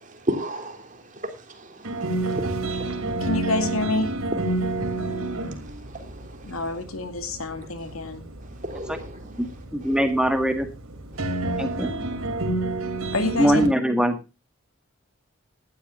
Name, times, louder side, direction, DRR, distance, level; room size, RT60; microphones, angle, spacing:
voice 1, 0.2-0.9 1.7-2.9 5.2-5.4 5.6-5.8 6.0-6.1 8.6-9.2, equal, 35° right, 3.2 m, -32 dB
sound 1, 1.8-13.7, right 2 dB, 85° right, 3.0 m, -30 dB
voice 2, 3.2-4.1 6.5-8.2 13.1-13.6, left 2 dB, 80° left, 2.3 m, -27 dB
voice 3, 9.7-10.7 11.6-11.9 13.4-14.2, equal, 5° right, 1.7 m, -22 dB
18.5 x 12.5 x 2.5 m
head